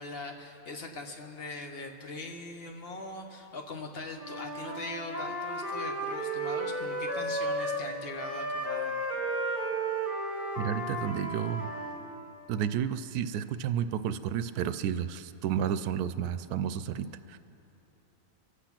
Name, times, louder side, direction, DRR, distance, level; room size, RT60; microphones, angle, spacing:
voice 1, 0.0-9.1, left 2 dB, 40° left, 3 dB, 1.3 m, -41 dB
Wind instrument woodwind instrument, 4.1-7.9 8.2-12.0, right 1 dB, 10° right, 2.4 m, -33 dB
voice 2, 10.6-11.7 12.5-17.4, right 9 dB, 80° right, 12 dB, 1.1 m, -31 dB
24.5 x 8.3 x 5.9 m, 3.0 s
omnidirectional pair, 1.6 m